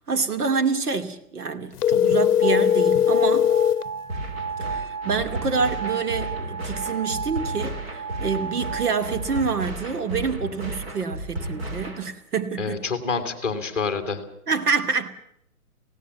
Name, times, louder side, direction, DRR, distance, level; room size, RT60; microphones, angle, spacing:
voice 1, 0.1-3.5 4.6-12.8 14.5-15.1, right 5 dB, 85° right, 2.6 m, -27 dB
sound 1, 1.8-3.9, left 9 dB, 85° left, 0.7 m, -19 dB
sound 2, 2.4-9.4, right 6 dB, 65° right, 1.5 m, -33 dB
sound 3, 4.1-12.1, right 1 dB, 40° right, 3.8 m, -34 dB
voice 2, 12.6-14.2, left 5 dB, ahead, 1.9 m, -27 dB
18.0 x 16.5 x 9.2 m
hypercardioid pair, 170°, 45 cm